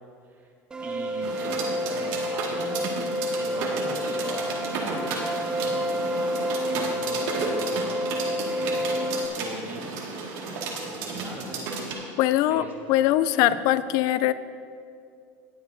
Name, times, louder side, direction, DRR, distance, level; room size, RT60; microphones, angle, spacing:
sound 1, 0.7-9.3, equal, 10° right, 0.5 m, -29 dB
voice 1, 0.8-2.8 3.3-5.8 6.6-8.1 8.4-8.8 9.3-10.0 10.8-11.7 11.9-12.2 12.5-12.7 13.4-13.6, right 2 dB, 30° right, 0 dB, 1.7 m, -40 dB
sound 2, 1.2-11.9, right 4 dB, 65° right, 2.0 m, -33 dB
voice 2, 12.2-14.3, left 13 dB, 60° left, 15 dB, 0.4 m, -22 dB
19.5 x 7.6 x 2.7 m, 2.4 s
supercardioid pair, 135°, 7 cm